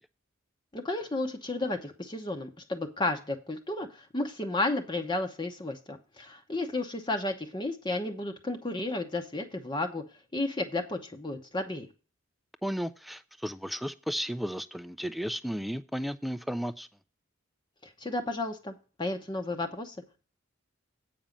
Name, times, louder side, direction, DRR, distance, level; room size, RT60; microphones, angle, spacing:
voice 1, 0.7-10.0 10.3-11.9 18.0-20.0, left 2 dB, 20° left, 5 dB, 0.9 m, -32 dB
voice 2, 12.6-16.9, equal, ahead, 13 dB, 0.4 m, -34 dB
8.8 x 5.2 x 7.2 m, 0.35 s
head